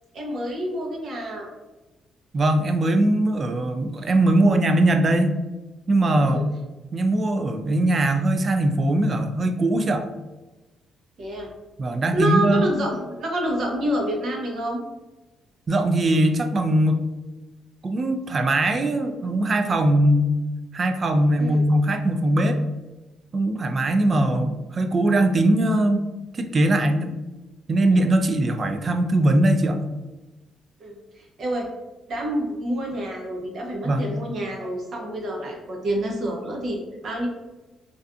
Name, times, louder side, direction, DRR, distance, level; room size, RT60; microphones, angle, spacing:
voice 1, 0.1-1.5 6.2-6.4 11.2-11.5 12.1-14.8 21.4-21.6 30.8-31.7 32.1-37.3, right 1 dB, 60° right, 0 dB, 0.7 m, -28 dB
voice 2, 2.3-5.4 5.9-6.4 6.9-10.1 11.8-12.7 15.7-17.0 17.8-20.4 20.7-22.6 23.3-26.0 26.3-27.2 27.7-29.8 33.8-34.0, right 1 dB, 40° right, 6 dB, 0.3 m, -21 dB
2.5 x 2.3 x 2.4 m, 1.1 s
cardioid pair, 90°, 0 cm